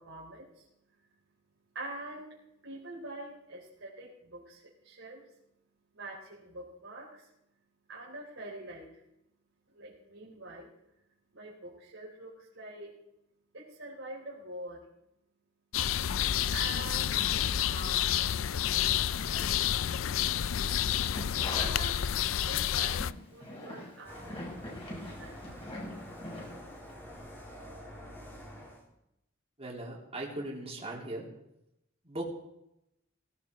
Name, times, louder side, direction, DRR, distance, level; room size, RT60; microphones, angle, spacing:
voice 1, 0.0-15.1 15.8-18.1 18.4-20.4 21.4-26.0, right 2 dB, 70° right, -5 dB, 3.8 m, -47 dB
sound 1, 15.7-23.1, left 10 dB, 75° left, 0.5 m, -29 dB
sound 2, 21.1-22.5 22.8-26.9 27.2-27.3, left 1 dB, 30° left, 6.7 m, -43 dB
sound 3, 24.0-28.8, equal, 10° left, 3.8 m, -47 dB
voice 2, 29.6-31.2 32.0-32.2, right 1 dB, 30° right, -3 dB, 3.7 m, -38 dB
17.5 x 17.0 x 4.8 m, 0.87 s
head